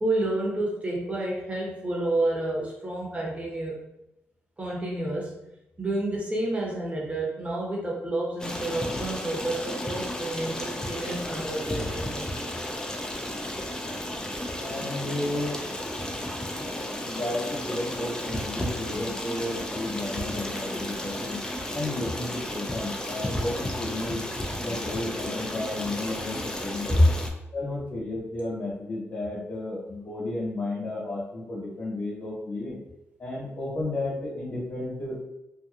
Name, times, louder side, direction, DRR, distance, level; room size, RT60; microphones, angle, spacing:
voice 1, 0.0-3.8 4.6-5.3 5.8-12.3 18.6-18.7, right 2 dB, 25° right, -3 dB, 1.0 m, -30 dB
Stream, 8.4-27.3, left 1 dB, 15° left, 0.4 m, -33 dB
voice 2, 14.6-15.6 17.0-24.2 24.6-27.0 27.5-32.8 33.2-35.2, left 2 dB, 50° left, -7 dB, 1.2 m, -33 dB
2.7 x 2.3 x 2.4 m, 0.89 s
cardioid pair, 65°, 5 cm